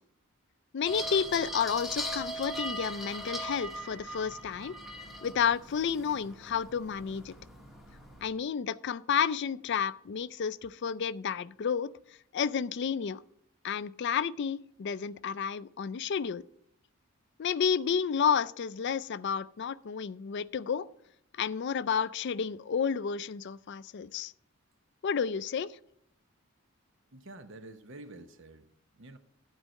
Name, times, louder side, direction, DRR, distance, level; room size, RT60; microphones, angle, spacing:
voice 1, 0.7-4.7 5.2-7.3 8.2-11.9 12.3-13.2 13.6-16.4 17.4-20.9 21.4-24.3 25.0-25.7, left 7 dB, 50° left, 0.4 m, -31 dB
sound 1, 0.8-8.3, equal, ahead, 1.1 m, -40 dB
voice 2, 27.1-29.2, right 2 dB, 55° right, 0.8 m, -49 dB
12.0 x 4.6 x 6.3 m
head